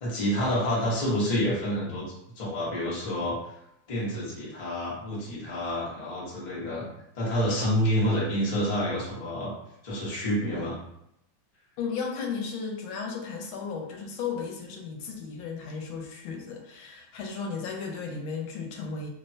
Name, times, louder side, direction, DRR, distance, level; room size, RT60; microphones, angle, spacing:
voice 1, 0.0-2.0 2.4-3.4 3.9-6.9 7.1-9.5 9.8-10.8, equal, 60° left, -7 dB, 0.4 m, -28 dB
voice 2, 11.8-19.1, left 5 dB, 80° left, 1 dB, 1.3 m, -35 dB
3.2 x 2.1 x 2.6 m, 0.79 s
omnidirectional pair, 2.2 m